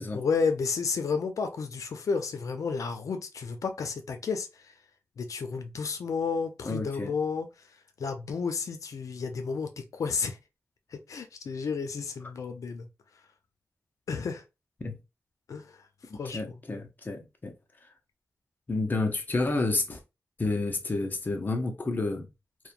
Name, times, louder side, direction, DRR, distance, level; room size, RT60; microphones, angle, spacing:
voice 1, 0.1-4.5 5.2-7.5 8.0-10.4 10.9-12.9 14.1-14.4 15.5-15.6 16.1-16.4, left 5 dB, 90° left, 0.4 m, -31 dB
voice 2, 6.6-7.1 14.8-15.0 16.1-17.5 18.7-20.0 20.4-22.3, left 3 dB, 35° left, 0.6 m, -30 dB
2.9 x 2.1 x 2.4 m
wide cardioid pair, 140°, 5 cm